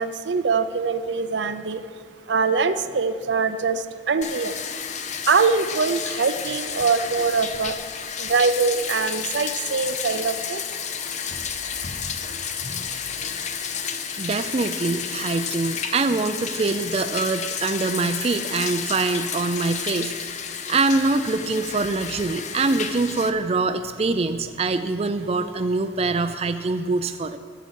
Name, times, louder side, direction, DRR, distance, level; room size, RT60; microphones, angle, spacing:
voice 1, 0.0-1.8 2.3-3.8 4.1-4.5 5.3-7.8 8.2-10.6, right 4 dB, 75° right, 10 dB, 0.6 m, -23 dB
Bathtub (filling or washing), 4.2-23.3, left 7 dB, 40° left, 0.6 m, -31 dB
voice 2, 14.2-20.4 20.7-27.4, right 3 dB, 35° right, 8 dB, 0.4 m, -24 dB
10.5 x 8.2 x 8.0 m, 2.1 s
head